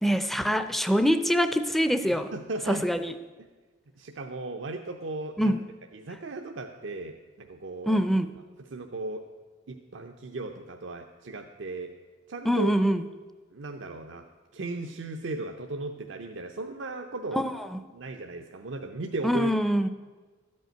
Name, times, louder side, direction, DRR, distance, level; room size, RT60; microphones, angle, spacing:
voice 1, 0.0-2.3 2.7-3.1 5.4-5.6 7.9-8.3 12.5-13.0 17.3-17.8 19.2-19.9, equal, ahead, 10 dB, 0.4 m, -24 dB
voice 2, 2.1-2.8 3.4-3.5 4.0-5.6 5.9-8.0 8.7-9.3 9.7-12.0 12.3-12.7 13.5-14.2 14.5-17.5 17.9-19.5, right 2 dB, 80° right, 4 dB, 0.7 m, -36 dB
13.0 x 5.5 x 8.9 m, 1.4 s
head